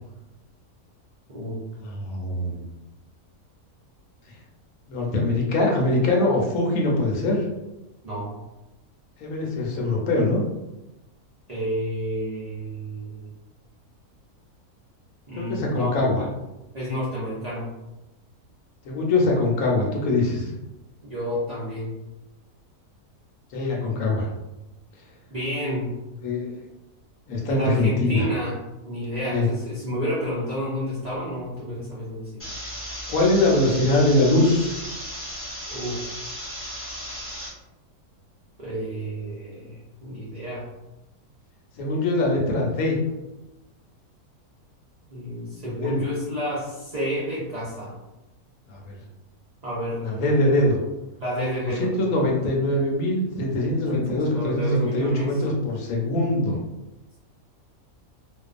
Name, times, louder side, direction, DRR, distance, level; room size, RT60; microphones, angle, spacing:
voice 1, 1.3-1.6 8.0-8.3 11.5-13.3 15.3-16.0 16.7-17.7 21.0-21.9 25.3-25.9 27.5-28.6 28.8-32.4 35.7-36.0 38.6-40.7 45.1-48.0 49.6-50.3 51.2-51.9 54.1-55.4, equal, 65° right, -8 dB, 0.4 m, -30 dB
voice 2, 1.8-2.6 4.9-7.4 9.2-10.4 15.3-16.2 18.8-20.5 23.5-24.3 26.2-26.5 27.3-28.3 29.3-29.5 33.1-34.7 41.8-43.0 45.8-46.0 48.7-49.0 50.0-50.8 51.6-56.6, left 2 dB, 75° left, -1 dB, 1.0 m, -22 dB
sound 1, 32.4-37.5, equal, 15° left, 0.4 m, -35 dB
2.5 x 2.2 x 2.4 m, 0.99 s
omnidirectional pair, 1.6 m